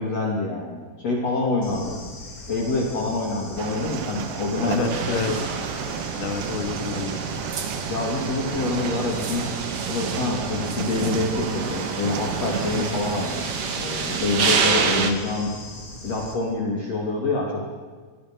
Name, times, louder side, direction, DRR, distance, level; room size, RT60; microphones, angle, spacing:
voice 1, 0.0-1.9 2.5-5.7 7.9-9.5 9.9-15.5 16.0-17.7, left 2 dB, 40° left, -2 dB, 3.6 m, -26 dB
Bird / Insect, 1.6-16.3, left 1 dB, 20° left, 4.0 m, -40 dB
sound 1, 3.6-12.9, right 10 dB, 75° right, 3.0 m, -34 dB
voice 2, 4.7-5.3 6.2-7.2, left 7 dB, 80° left, 8 dB, 3.6 m, -29 dB
sound 2, 4.9-15.1, right 5 dB, 45° right, 2.1 m, -28 dB
28.5 x 24.0 x 6.3 m, 1.5 s
omnidirectional pair, 5.0 m